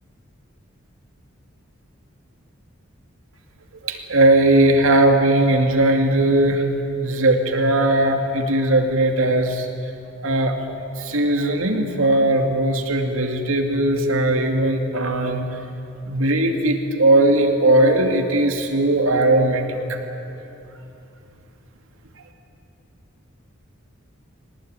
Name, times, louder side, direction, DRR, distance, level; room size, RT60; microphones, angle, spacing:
voice 1, 3.8-6.7 7.0-9.7 10.2-10.6 11.0-15.5 16.1-20.0, right 1 dB, 80° right, 4 dB, 2.4 m, -18 dB
22.5 x 19.0 x 9.1 m, 2.8 s
head